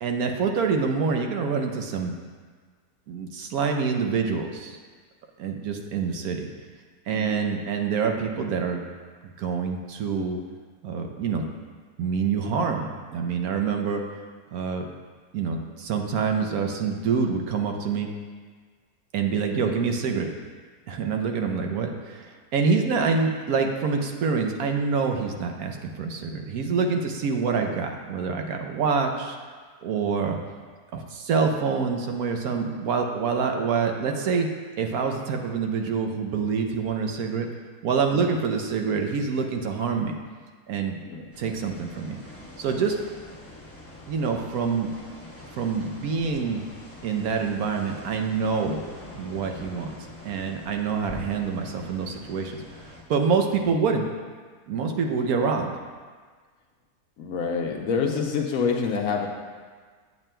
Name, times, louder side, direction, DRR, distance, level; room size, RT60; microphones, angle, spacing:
voice 1, 0.0-2.1 3.1-4.8 5.4-6.5 7.1-8.8 9.2-10.4 10.8-11.4 12.0-14.0 14.5-14.9 15.3-18.1 19.1-20.3 20.9-29.4 29.8-30.4 30.9-37.5 37.8-40.2 40.7-41.0 41.4-42.2 42.6-43.0 44.1-44.9 45.5-46.6 47.0-48.9 49.1-50.0 50.2-54.0 54.7-55.7, right 5 dB, 75° right, 3 dB, 1.1 m, -26 dB
voice 2, 7.1-7.4 38.1-38.3 41.0-41.2 57.2-59.3, left 5 dB, 65° left, 1 dB, 1.0 m, -27 dB
sound 1, 41.3-53.0, left 2 dB, 10° left, 0.8 m, -45 dB
8.8 x 8.4 x 2.2 m, 1.5 s
omnidirectional pair, 1.7 m